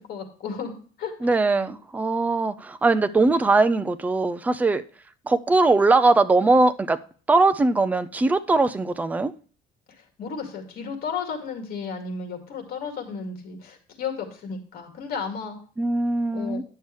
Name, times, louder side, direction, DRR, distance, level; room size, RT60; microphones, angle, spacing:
voice 1, 0.1-1.4 10.2-15.6 16.3-16.6, left 5 dB, 50° left, 2.4 m, -33 dB
voice 2, 1.2-4.8 5.3-7.0 7.3-9.3 15.8-16.6, right 3 dB, 10° right, 0.3 m, -20 dB
10.5 x 6.7 x 3.1 m
cardioid pair, 165°, 20 cm